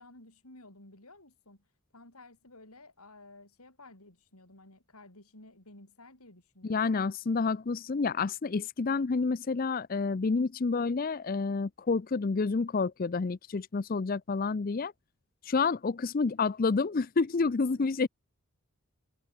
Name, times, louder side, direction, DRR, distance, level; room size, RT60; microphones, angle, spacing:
voice 1, 0.0-1.7 1.9-7.0 17.7-18.0, left 2 dB, 85° left, 7.9 m, -54 dB
voice 2, 6.6-14.9 15.4-18.1, left 4 dB, 40° left, 0.4 m, -29 dB
head